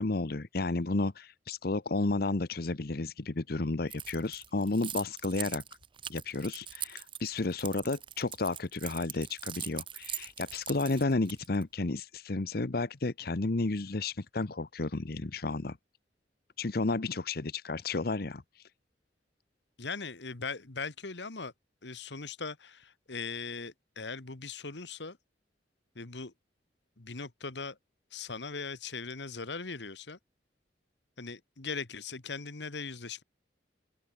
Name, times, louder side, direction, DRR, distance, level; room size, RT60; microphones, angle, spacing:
voice 1, 0.0-5.6 6.1-15.8 16.6-18.7, left 3 dB, 55° left, 0.9 m, -32 dB
Keys jangling, 3.9-11.6, right 10 dB, 30° right, 0.8 m, -41 dB
voice 2, 19.8-21.5 21.8-25.2 25.9-26.3 27.0-27.8 28.1-30.2 31.2-33.2, left 4 dB, 75° left, 1.6 m, -39 dB
open air
head